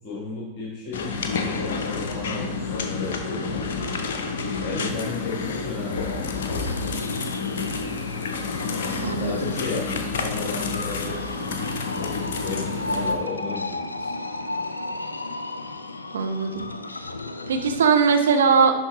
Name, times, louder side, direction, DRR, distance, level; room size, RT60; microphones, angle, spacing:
voice 1, 0.0-3.8 4.6-7.0 9.2-11.2 11.9-14.1, left 4 dB, 40° left, -3 dB, 1.4 m, -34 dB
sound 1, 0.9-13.1, left 4 dB, 60° left, 0.7 m, -29 dB
sound 2, 6.3-17.9, left 2 dB, 80° left, 0.4 m, -34 dB
voice 2, 9.0-9.5 16.1-16.7 17.5-18.7, right 5 dB, 65° right, 5 dB, 0.7 m, -20 dB
11.0 x 3.9 x 3.0 m, 1.1 s
figure-of-eight pair, 90°, 0 cm